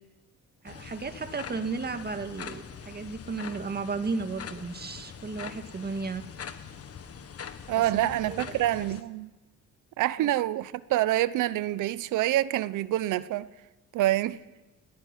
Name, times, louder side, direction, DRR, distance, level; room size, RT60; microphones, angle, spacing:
sound 1, 0.6-9.0, left 7 dB, 50° left, 1.7 m, -43 dB
voice 1, 0.6-6.3 7.7-8.4 8.8-8.9 10.2-10.3, right 4 dB, 30° right, 2.0 m, -34 dB
voice 2, 7.7-9.3 10.0-13.5 13.9-14.4, right 14 dB, 85° right, 0.9 m, -26 dB
20.5 x 14.0 x 9.9 m
cardioid pair, 90°, 30 cm